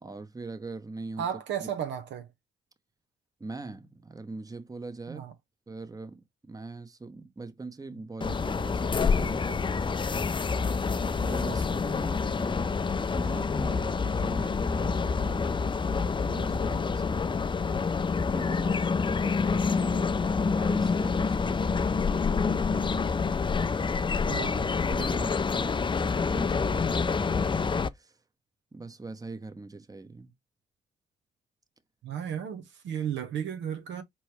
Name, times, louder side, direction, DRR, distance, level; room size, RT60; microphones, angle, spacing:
voice 1, 0.0-1.7 3.4-5.3 5.7-10.3 11.0-15.7 16.3-17.4 18.2-23.2 23.8-24.5 24.8-27.6 27.9-28.2 28.7-30.3, right 3 dB, 20° right, 0.8 m, -42 dB
voice 2, 1.2-2.3 5.1-5.3 11.5-11.8 24.2-24.7 32.0-34.0, right 9 dB, 80° right, 0.8 m, -34 dB
sound 1, 8.2-27.9, left 5 dB, 25° left, 0.4 m, -27 dB
4.4 x 3.0 x 3.2 m
supercardioid pair, 55°, 19 cm